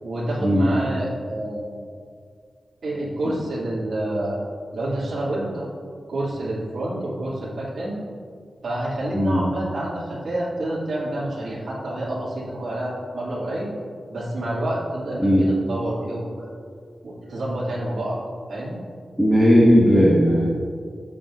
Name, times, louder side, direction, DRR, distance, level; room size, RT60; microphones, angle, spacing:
voice 1, 0.0-1.8 2.8-4.4 4.7-5.7 6.1-8.0 8.6-13.7 14.1-16.5 17.0-18.2 18.5-18.8, right 1 dB, 75° right, -8 dB, 2.6 m, -28 dB
voice 2, 19.2-20.5, equal, 5° right, -8 dB, 1.9 m, -16 dB
16.0 x 7.4 x 2.6 m, 2.1 s
wide cardioid pair, 115°, 0 cm